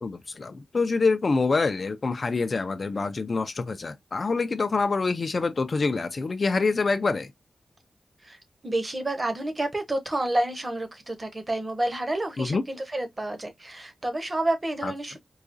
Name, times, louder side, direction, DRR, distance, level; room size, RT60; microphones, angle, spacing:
voice 1, 0.0-7.3 12.4-12.6 14.8-15.2, left 4 dB, 40° left, 0.4 m, -26 dB
voice 2, 8.6-15.2, right 1 dB, 25° right, 0.9 m, -29 dB
4.7 x 2.3 x 2.5 m
wide cardioid pair, 160°, 0 cm